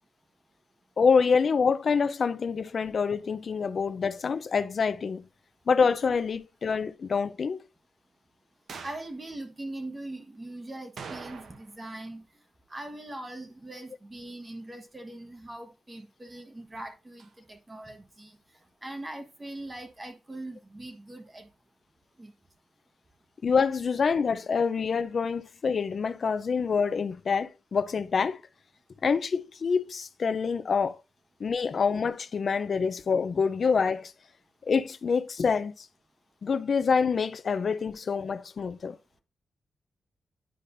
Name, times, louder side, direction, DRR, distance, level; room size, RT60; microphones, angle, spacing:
voice 1, 1.0-5.3 5.7-7.6 23.4-28.4 29.0-31.0 31.4-34.1 34.7-35.9 36.4-39.0, left 5 dB, 45° left, 0.6 m, -26 dB
sound 1, 8.7-9.1 11.0-11.8 12.1-12.2 17.2-17.3, right 5 dB, 65° right, 0.8 m, -43 dB
voice 2, 8.8-12.2 12.7-18.4 18.8-21.5 22.2-22.3, right 1 dB, 20° right, 1.4 m, -41 dB
10.0 x 5.0 x 2.6 m
wide cardioid pair, 150°, 0 cm